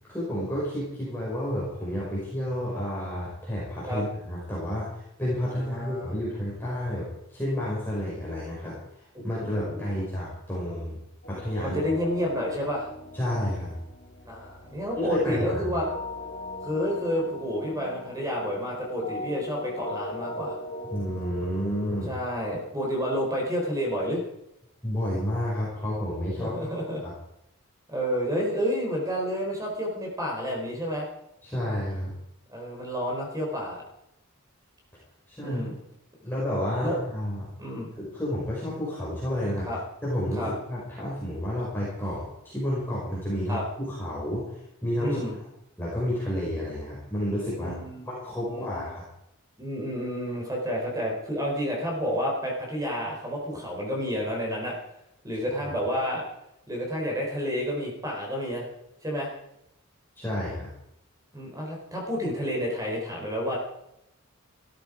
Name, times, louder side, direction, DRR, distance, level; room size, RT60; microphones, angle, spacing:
voice 1, 0.1-8.8 9.2-11.0 11.3-11.8 13.1-13.8 15.0-15.8 20.9-22.1 24.8-26.7 27.0-27.1 31.4-32.1 35.3-35.6 36.2-37.5 38.0-39.7 40.0-45.2 45.8-47.7 48.0-49.0 55.5-55.6 60.2-60.7, equal, 10° left, -7 dB, 5.6 m, -30 dB
voice 2, 5.6-6.1 9.1-10.0 10.5-10.7 11.6-12.9 14.3-15.9 16.6-20.6 22.1-24.2 26.4-27.0 27.9-31.1 32.5-33.8 35.4-35.7 36.8-37.0 37.6-37.9 39.6-39.8 40.3-40.5 43.5-43.6 45.0-45.3 47.6-48.1 48.5-48.9 49.6-54.8 55.2-56.3 56.7-58.7 59.0-59.3 61.3-63.6, equal, 15° right, -1 dB, 3.9 m, -30 dB
sound 1, 11.2-22.2, left 1 dB, 45° left, 2.7 m, -40 dB
16.5 x 13.5 x 5.0 m, 0.82 s
head